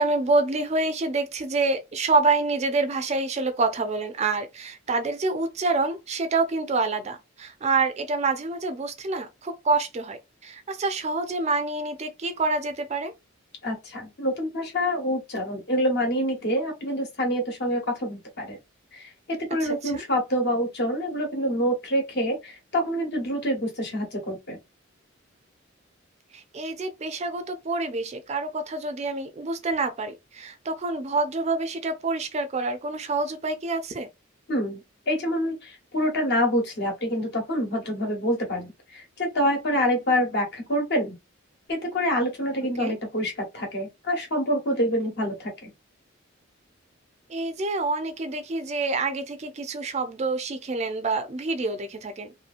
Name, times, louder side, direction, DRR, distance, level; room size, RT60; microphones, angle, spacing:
voice 1, 0.0-13.1 19.6-20.0 26.3-34.1 42.8-43.0 47.3-52.3, right 3 dB, 35° right, 0.4 m, -27 dB
voice 2, 13.6-18.6 18.9-24.6 34.5-34.8 35.1-41.2 41.7-45.7, equal, 55° left, 1.1 m, -26 dB
2.8 x 2.6 x 2.5 m
head